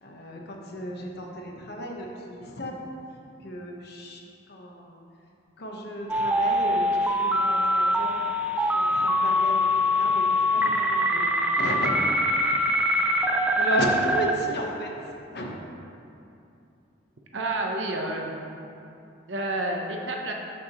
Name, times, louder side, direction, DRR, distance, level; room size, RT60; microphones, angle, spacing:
voice 1, 0.0-2.9 3.4-4.2 4.5-5.0 5.6-8.2 8.6-11.3 11.6-12.1 13.6-14.9 15.3-15.6, equal, 60° left, 0 dB, 1.2 m, -34 dB
sound 1, 6.1-14.3, equal, 5° right, 0.4 m, -23 dB
voice 2, 17.3-18.3 19.3-20.3, right 2 dB, 65° right, 1 dB, 0.9 m, -29 dB
14.0 x 6.0 x 3.1 m, 2.7 s
head